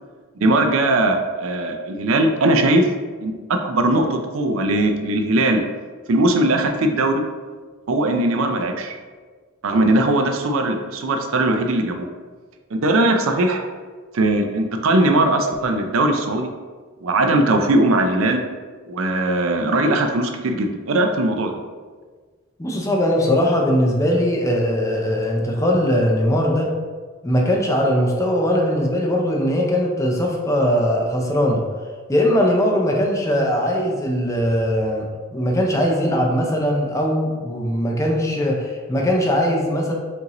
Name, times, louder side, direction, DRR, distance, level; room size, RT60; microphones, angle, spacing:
voice 1, 0.4-2.9 3.2-5.6 6.1-7.2 7.9-8.9 9.6-12.1 12.7-13.7 14.1-16.5 17.0-18.4 18.9-21.6, right 2 dB, 75° right, 5 dB, 0.5 m, -19 dB
voice 2, 22.6-26.7 27.2-31.6 32.1-39.9, equal, 15° left, 0 dB, 0.5 m, -20 dB
5.4 x 2.6 x 3.0 m, 1.5 s
head